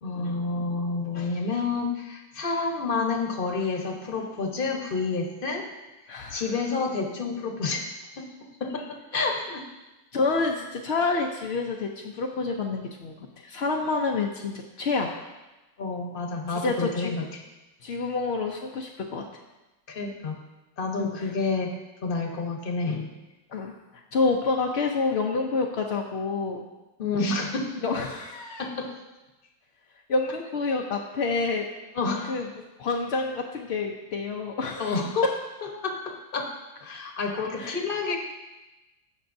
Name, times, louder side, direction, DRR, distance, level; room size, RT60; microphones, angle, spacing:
voice 1, 0.0-5.7 6.3-7.8 8.2-8.3 8.6-9.6 15.8-17.4 19.9-20.4 20.8-23.1 27.0-27.8 28.6-29.0 32.0-32.4 34.8-35.2 35.6-36.5 36.8-38.2, left 4 dB, 40° left, 2 dB, 1.0 m, -29 dB
voice 2, 6.1-6.4 10.1-15.1 16.5-17.1 17.8-19.3 21.0-21.3 23.5-26.7 27.8-28.7 30.1-31.7 32.3-32.5 32.8-35.0 37.0-37.8, left 3 dB, 60° left, 0 dB, 0.7 m, -28 dB
16.0 x 6.3 x 2.6 m, 1.1 s
omnidirectional pair, 1.8 m